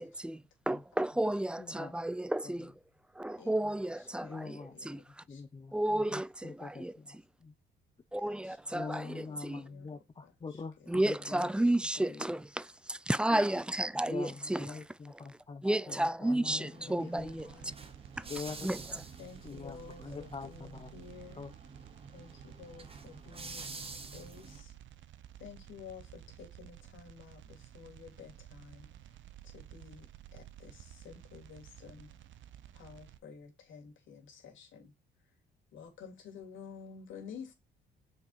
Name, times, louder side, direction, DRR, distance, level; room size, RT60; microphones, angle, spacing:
voice 1, 0.0-2.7 3.2-4.6 4.9-5.0 5.7-6.9 8.1-9.0 9.4-9.6 10.9-14.7 15.6-17.5 18.6-18.8, right 1 dB, 5° right, 0.3 m, -32 dB
voice 2, 1.6-2.1 2.4-2.7 4.2-7.5 8.7-12.2 13.9-17.3 18.3-18.7 19.4-20.9 21.3-21.5, left 4 dB, 25° left, 0.6 m, -45 dB
voice 3, 3.4-4.9 5.3-5.4 8.2-11.1 14.2-14.8 16.5-17.8 18.9-21.4 22.1-24.7 25.4-28.9 29.4-32.1 32.7-34.9 35.7-37.5, left 6 dB, 75° left, 2.8 m, -52 dB
sound 1, 16.2-24.6, right 4 dB, 30° right, 1.5 m, -49 dB
sound 2, 17.2-33.2, right 12 dB, 75° right, 0.8 m, -53 dB
6.6 x 4.7 x 4.2 m
cardioid pair, 90°, 20 cm